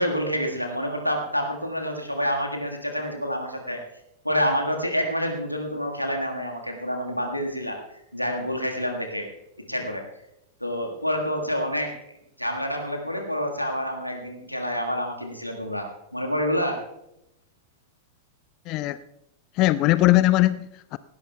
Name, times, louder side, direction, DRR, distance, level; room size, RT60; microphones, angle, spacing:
voice 1, 0.0-3.8 4.2-7.8 8.1-9.3 9.7-10.0 10.6-11.9 12.4-16.8, equal, 90° left, 1.6 m, -28 dB
voice 2, 18.7-19.0 19.6-21.0, left 17 dB, 40° left, 0.3 m, -20 dB
18.0 x 16.5 x 2.3 m
figure-of-eight pair, 90°, 0 cm